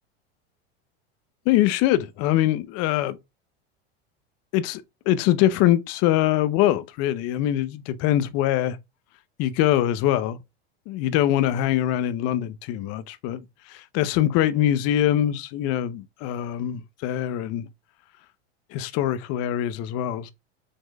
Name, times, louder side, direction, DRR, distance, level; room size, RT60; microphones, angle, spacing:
voice 1, 1.5-3.2 4.5-8.8 9.4-10.4 10.9-17.7 18.7-20.3, left 12 dB, 50° left, 0.7 m, -23 dB
6.5 x 3.6 x 2.3 m
supercardioid pair, 115°, 32 cm